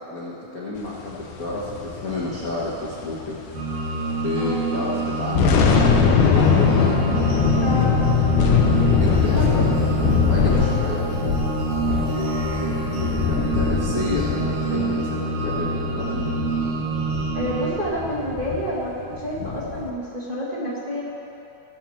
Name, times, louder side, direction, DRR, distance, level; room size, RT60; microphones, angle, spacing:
voice 1, 0.0-3.4 4.2-6.8 9.0-11.3 12.1-16.5, left 2 dB, 65° left, -6 dB, 0.8 m, -30 dB
sound 1, 1.3-4.1 4.4-4.6 5.1-19.9, left 6 dB, 80° left, 2.4 m, -22 dB
sound 2, 3.5-17.7, right 3 dB, 80° right, 3.1 m, -27 dB
sound 3, 6.2-16.0, equal, 60° right, 3.6 m, -37 dB
voice 2, 7.6-7.9 9.3-9.5 17.3-21.0, equal, 20° right, -8 dB, 1.1 m, -28 dB
16.5 x 7.5 x 4.3 m, 2.9 s
omnidirectional pair, 3.6 m